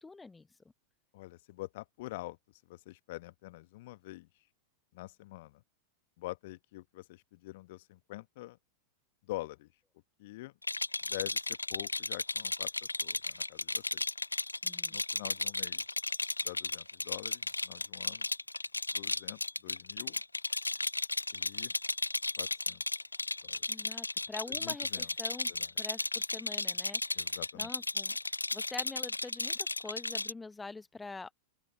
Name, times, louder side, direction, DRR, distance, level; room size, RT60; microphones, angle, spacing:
voice 1, 0.0-0.5 14.6-15.0 23.7-28.2 28.5-31.3, left 3 dB, 10° left, 1.1 m, -45 dB
voice 2, 1.1-4.3 4.9-5.6 6.2-8.6 9.2-9.7 10.2-10.6 11.0-14.0 14.9-15.8 16.4-18.3 18.9-20.2 21.3-21.7 22.4-22.8 23.4-23.7 24.5-25.1 25.5-25.7 27.1-27.7, left 19 dB, 50° left, 1.4 m, -46 dB
Rattle, 10.6-30.3, left 2 dB, 85° left, 0.5 m, -34 dB
open air
figure-of-eight pair, 90°, 0 cm